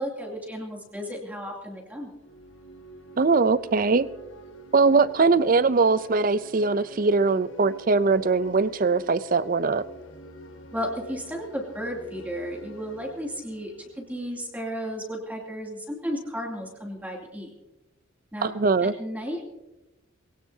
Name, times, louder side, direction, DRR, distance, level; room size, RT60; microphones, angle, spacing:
voice 1, 0.0-2.1 10.7-17.5 18.3-18.5 18.8-19.5, equal, 10° right, -1 dB, 2.7 m, -34 dB
sound 1, 2.1-14.8, equal, 70° left, 1.9 m, -46 dB
voice 2, 3.2-4.1 4.7-9.8 18.4-18.9, right 4 dB, 45° right, 17 dB, 0.5 m, -21 dB
22.0 x 17.5 x 2.8 m, 0.99 s
head